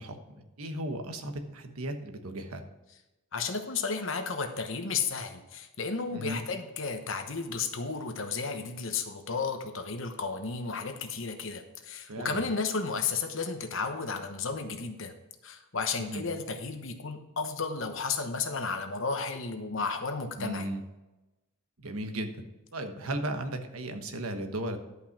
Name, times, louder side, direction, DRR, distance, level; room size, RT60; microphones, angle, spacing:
voice 1, 0.0-2.6 6.1-6.4 12.1-12.4 16.0-16.2 20.4-20.8 21.8-22.4 22.7-24.8, right 1 dB, 80° right, 6 dB, 1.2 m, -36 dB
voice 2, 3.3-15.1 15.4-20.7, left 4 dB, 60° left, 6 dB, 1.1 m, -33 dB
11.5 x 5.5 x 5.9 m, 1.0 s
head